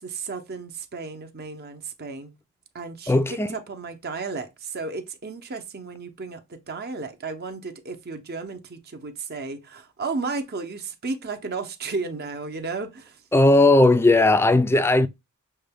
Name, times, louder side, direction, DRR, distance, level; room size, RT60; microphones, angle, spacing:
voice 1, 0.0-2.3 2.7-13.2, right 4 dB, 45° right, 0.7 m, -33 dB
voice 2, 3.1-3.5 13.3-15.1, left 2 dB, 10° left, 0.3 m, -17 dB
6.3 x 2.2 x 3.4 m
head